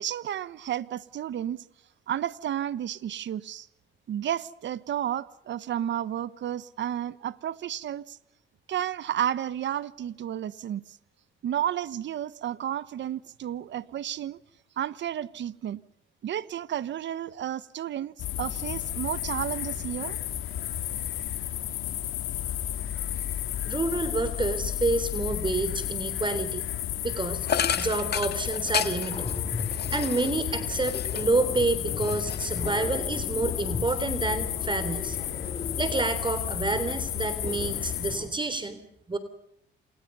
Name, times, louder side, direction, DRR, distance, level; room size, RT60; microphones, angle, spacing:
voice 1, 0.0-1.6 2.1-3.7 4.1-8.2 8.7-11.0 11.4-14.4 14.8-15.8 16.2-20.2, right 10 dB, 65° right, 1.2 m, -32 dB
sound 1, 18.2-38.2, left 11 dB, 85° left, 2.9 m, -32 dB
voice 2, 23.6-26.6 27.0-27.5 27.8-29.3 29.9-35.2 35.8-38.8 39.1-39.2, right 3 dB, 25° right, 3.5 m, -28 dB
sound 2, 27.5-31.4 31.8-33.0, left 8 dB, 55° left, 1.8 m, -32 dB
sound 3, 28.8-38.3, left 3 dB, 30° left, 6.5 m, -39 dB
28.5 x 28.0 x 5.6 m
cardioid pair, 90°, 20 cm